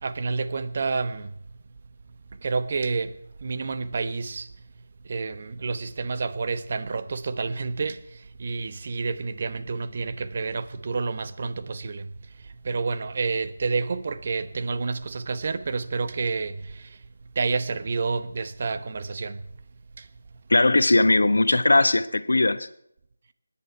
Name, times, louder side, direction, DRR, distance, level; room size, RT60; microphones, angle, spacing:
voice 1, 0.0-1.3 2.4-3.1 3.4-4.5 5.0-12.1 12.6-17.0 17.3-19.4 20.0-20.1, right 4 dB, 45° right, 1.0 m, -29 dB
voice 2, 20.5-22.7, left 2 dB, 70° left, 1.0 m, -19 dB
24.5 x 10.5 x 4.6 m
figure-of-eight pair, 160°, 0 cm